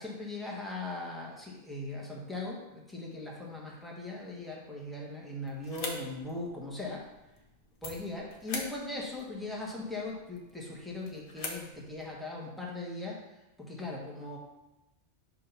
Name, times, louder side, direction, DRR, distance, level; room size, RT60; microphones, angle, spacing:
voice 1, 0.0-7.0 7.8-13.2 13.6-14.4, left 2 dB, ahead, -3 dB, 1.0 m, -39 dB
sound 1, 5.4-12.1, left 3 dB, 55° left, 0.9 m, -45 dB
6.0 x 2.8 x 5.6 m, 0.94 s
omnidirectional pair, 1.2 m